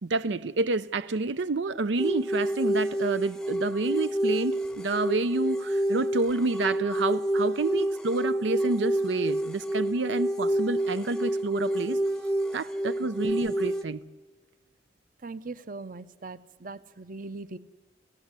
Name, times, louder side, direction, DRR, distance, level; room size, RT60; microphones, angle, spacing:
voice 1, 0.0-12.0 12.5-14.0, right 3 dB, 85° right, 0.6 m, -29 dB
sound 1, 2.0-13.8, right 1 dB, 5° left, 0.7 m, -28 dB
voice 2, 15.2-17.6, right 3 dB, 50° right, 0.8 m, -40 dB
27.5 x 16.0 x 8.2 m
head